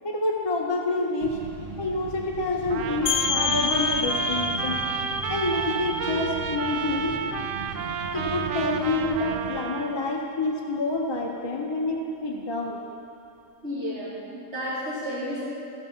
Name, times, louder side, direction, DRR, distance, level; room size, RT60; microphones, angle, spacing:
voice 1, 0.0-1.4 1.8-4.8 5.3-7.2 8.1-12.8, left 2 dB, 30° left, 0 dB, 0.5 m, -28 dB
sound 1, 1.2-9.5, right 4 dB, 45° right, 0.9 m, -38 dB
voice 2, 2.7-3.1 4.6-4.8 6.1-6.2 11.7-11.8 13.6-15.4, equal, 60° right, -11 dB, 2.4 m, -33 dB
Trumpet, 2.7-10.2, right 7 dB, 85° right, 0.9 m, -32 dB
sound 2, 3.1-8.5, left 5 dB, 85° left, 1.0 m, -29 dB
15.0 x 5.9 x 5.7 m, 2.7 s
omnidirectional pair, 1.3 m